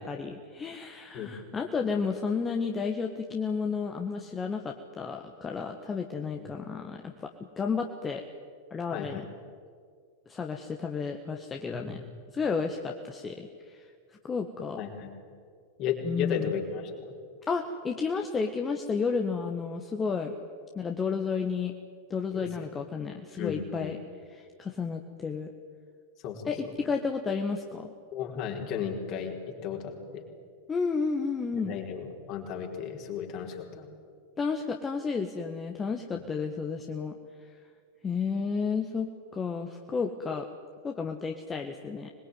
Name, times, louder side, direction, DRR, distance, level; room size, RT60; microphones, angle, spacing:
voice 1, 0.0-7.3 7.6-8.2 8.7-9.2 10.3-12.0 12.3-13.9 14.2-14.8 16.0-16.6 17.5-20.3 20.7-21.7 22.1-24.0 24.3-25.5 26.4-27.9 30.7-31.8 34.4-37.1 38.0-40.5 40.8-42.1, left 5 dB, 20° left, 4 dB, 1.6 m, -32 dB
voice 2, 8.9-9.2 11.7-11.8 14.8-15.1 15.8-17.1 22.3-22.7 23.4-24.0 26.2-26.7 28.1-30.2 31.5-33.9 36.1-36.2, left 7 dB, 40° left, 1 dB, 4.7 m, -35 dB
25.5 x 21.5 x 9.4 m, 2.1 s
figure-of-eight pair, 90°, 0 cm